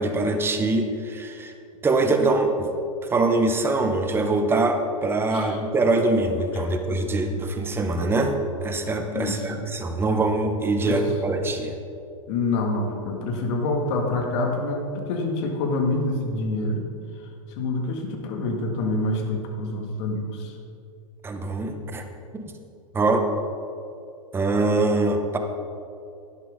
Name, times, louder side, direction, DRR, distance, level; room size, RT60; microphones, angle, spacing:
voice 1, 0.0-1.5 1.8-2.7 3.1-8.3 8.6-11.7 21.2-22.0 22.4-22.5 22.9-23.2 24.3-25.4, right 2 dB, 15° right, 5 dB, 0.9 m, -23 dB
voice 2, 9.1-9.6 10.8-11.0 12.3-16.8 17.6-20.6, left 2 dB, 50° left, 2 dB, 1.9 m, -26 dB
11.5 x 10.5 x 3.6 m, 2.5 s
hypercardioid pair, 130°, 18 cm